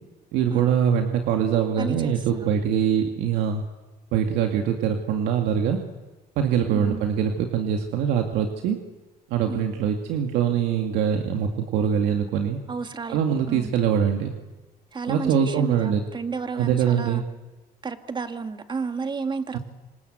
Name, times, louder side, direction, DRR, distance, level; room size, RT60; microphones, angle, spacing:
voice 1, 0.3-3.6 4.1-5.8 6.4-8.8 9.3-12.6 13.1-14.3 15.1-16.0 16.5-17.2 19.5-19.6, right 8 dB, 90° right, 4 dB, 2.2 m, -23 dB
voice 2, 1.8-2.5 6.7-7.1 9.5-9.7 12.7-13.2 13.5-13.7 14.9-17.2 17.8-19.6, right 5 dB, 25° right, 8 dB, 2.1 m, -31 dB
27.0 x 26.5 x 8.1 m, 1.2 s
cardioid pair, 110°, 17 cm